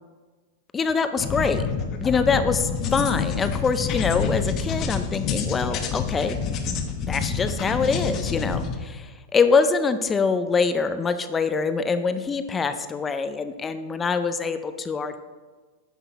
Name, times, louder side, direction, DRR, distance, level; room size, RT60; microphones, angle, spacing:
voice 1, 0.7-1.6 2.0-6.4 7.1-8.6 8.9-15.2, left 5 dB, 15° left, 10 dB, 0.4 m, -24 dB
sound 1, 1.2-8.8, left 6 dB, 35° left, 0.9 m, -27 dB
9.5 x 5.8 x 4.1 m, 1.4 s
supercardioid pair, 150°, 0 cm